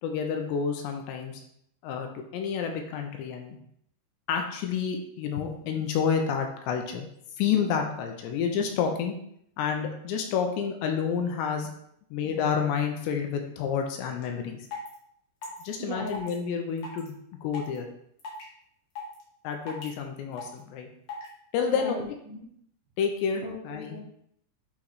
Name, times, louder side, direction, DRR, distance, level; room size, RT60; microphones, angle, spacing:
voice 1, 0.0-1.4 1.8-3.6 4.3-7.1 7.4-9.1 9.6-11.7 12.1-14.7 15.6-17.9 19.4-20.9 21.5-22.0 23.0-24.0, left 7 dB, 85° left, 3 dB, 2.8 m, -29 dB
sound 1, 14.2-14.3 14.7-14.9 15.4-15.6 16.1-16.3 16.8-17.1 17.5-17.8 18.2-18.4 19.0-19.2 19.7-19.9 20.4-20.6 21.1-21.3, left 4 dB, 60° left, 2.3 m, -38 dB
voice 2, 15.8-16.2 21.6-22.4 23.4-24.0, equal, 75° right, -3 dB, 2.2 m, -38 dB
8.7 x 3.1 x 4.1 m, 0.70 s
omnidirectional pair, 5.3 m